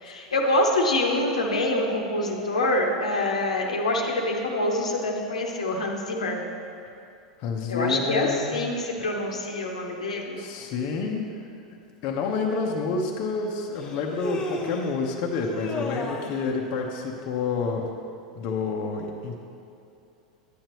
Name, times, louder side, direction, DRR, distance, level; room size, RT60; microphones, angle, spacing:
voice 1, 0.0-6.4 7.7-10.4, left 1 dB, 75° left, 1 dB, 1.0 m, -25 dB
voice 2, 7.4-8.5 10.4-11.2 12.0-17.9 18.4-19.4, left 4 dB, 50° left, 0 dB, 0.8 m, -28 dB
Human voice, 12.4-12.5 13.8-15.0 15.4-16.4, left 2 dB, 25° left, 1.0 m, -33 dB
10.0 x 8.8 x 3.1 m, 2.7 s
figure-of-eight pair, 90°, 4 cm